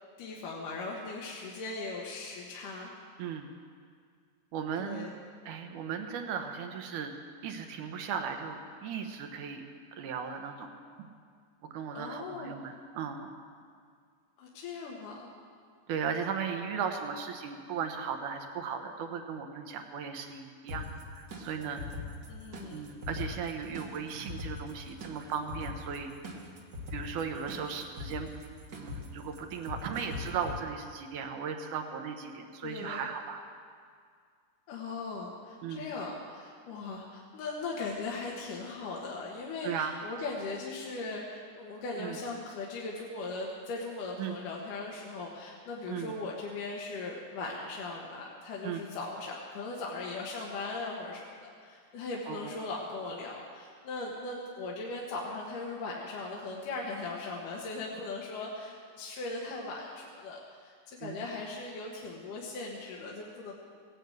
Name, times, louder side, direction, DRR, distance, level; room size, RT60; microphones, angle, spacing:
voice 1, 0.2-2.9 4.8-5.1 11.9-12.6 14.4-15.3 22.3-22.8 32.6-33.1 34.7-63.5, left 3 dB, 70° left, -3 dB, 2.8 m, -39 dB
voice 2, 3.2-3.5 4.5-5.1 5.5-7.1 7.4-9.6 10.0-10.7 11.0-11.1 11.6-13.3 15.9-21.8 22.7-26.1 26.9-28.3 28.7-33.4 35.6-35.9 39.6-39.9 42.0-42.2 44.2-44.3 45.9-46.2 48.6-48.8 52.3-52.5 61.0-61.3, right 7 dB, 70° right, 5 dB, 2.3 m, -37 dB
sound 1, 20.7-30.6, left 3 dB, 45° right, 1.1 m, -42 dB
17.5 x 9.5 x 8.0 m, 2.1 s
omnidirectional pair, 4.1 m